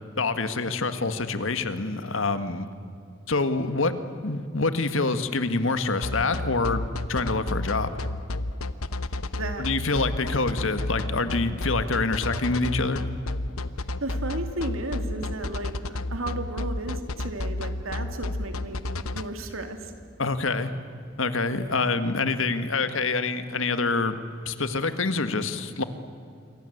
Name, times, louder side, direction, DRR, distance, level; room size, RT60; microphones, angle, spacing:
voice 1, 0.2-2.7 3.3-3.9 4.2-7.9 9.6-13.0 20.2-20.7 21.2-24.2 24.5-25.8, left 3 dB, 70° left, 10 dB, 1.8 m, -26 dB
sound 1, 6.0-19.2, left 2 dB, 90° left, 1.1 m, -31 dB
voice 2, 14.0-18.8 19.1-19.9, right 2 dB, 80° right, 6 dB, 3.0 m, -34 dB
27.5 x 24.5 x 8.0 m, 2.4 s
head